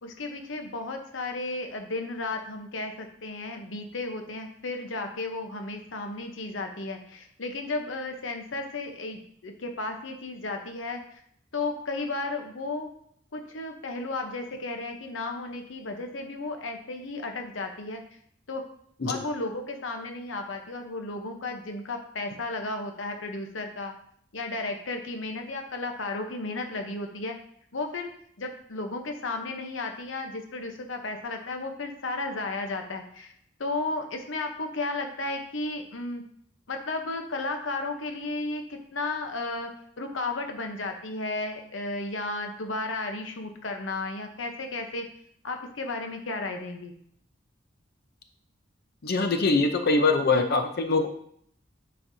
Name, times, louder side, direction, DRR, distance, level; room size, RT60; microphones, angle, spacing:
voice 1, 0.0-11.0 11.5-12.9 13.3-18.0 18.5-18.6 19.0-23.9 24.3-27.4 27.7-28.1 28.4-33.3 33.6-36.2 36.7-38.6 38.9-39.7 40.0-45.1 45.4-46.9, left 2 dB, 85° left, 4 dB, 0.9 m, -33 dB
voice 2, 49.0-51.1, left 3 dB, 55° left, 5 dB, 0.6 m, -23 dB
9.8 x 4.5 x 2.7 m, 0.66 s
head